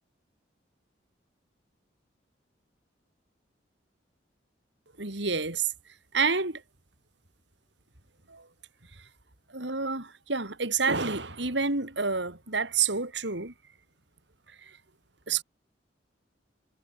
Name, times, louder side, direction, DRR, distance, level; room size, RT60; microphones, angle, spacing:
voice 1, 5.0-5.7 6.1-6.6 8.3-8.5 9.5-13.5 15.3-15.4, right 4 dB, 70° right, 3.5 m, -28 dB
head